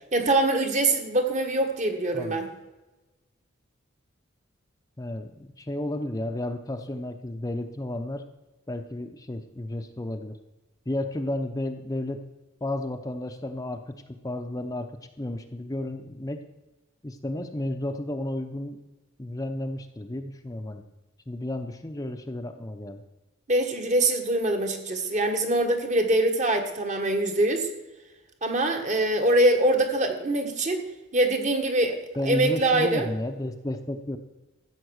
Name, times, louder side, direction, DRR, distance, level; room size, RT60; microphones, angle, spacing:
voice 1, 0.1-2.5 23.5-27.7 28.4-30.8 31.1-32.0 32.2-33.1, right 1 dB, 40° right, 5 dB, 1.6 m, -23 dB
voice 2, 5.0-8.2 8.7-10.4 10.9-12.2 12.6-16.4 17.0-18.8 19.2-20.8 21.3-23.0 32.2-34.2, left 1 dB, 15° left, 6 dB, 0.6 m, -32 dB
14.0 x 8.1 x 6.4 m, 1.1 s
head